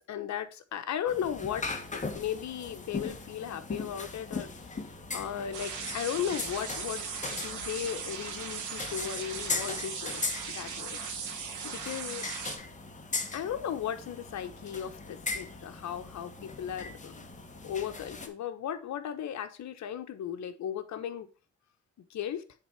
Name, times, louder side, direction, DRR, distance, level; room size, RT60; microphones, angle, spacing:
voice 1, 0.1-4.5 5.1-11.0 11.6-12.2 13.3-17.2 17.6-21.3 22.1-22.4, left 9 dB, 65° left, 9 dB, 1.1 m, -36 dB
sound 1, 1.1-18.3, left 3 dB, 25° left, 1.4 m, -39 dB
sound 2, 5.5-12.6, right 6 dB, 80° right, 1.7 m, -38 dB
8.0 x 3.8 x 5.7 m, 0.34 s
cardioid pair, 90°, 30 cm